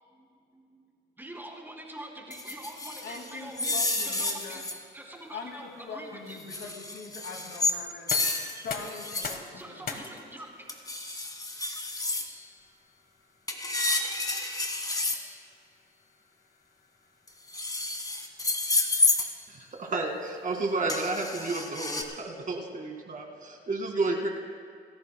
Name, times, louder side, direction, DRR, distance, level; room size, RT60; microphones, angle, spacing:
voice 1, 0.1-0.9 1.2-4.6 4.9-6.4 9.5-10.7, right 1 dB, 10° right, -1 dB, 3.0 m, -44 dB
knife-scrapes, 2.3-4.8 6.4-7.8 8.1-9.4 10.7-12.3 13.5-15.2 17.3-19.3 20.9-22.0, left 2 dB, 20° left, 1.6 m, -30 dB
voice 2, 3.0-4.7 5.3-8.1 8.6-9.8, left 4 dB, 65° left, 2 dB, 2.2 m, -42 dB
sound 1, 7.9-19.6, left 5 dB, 45° left, 1.3 m, -46 dB
voice 3, 19.5-24.3, right 3 dB, 40° right, 1 dB, 2.1 m, -31 dB
27.5 x 13.5 x 2.2 m, 2.3 s
cardioid pair, 90°, 20 cm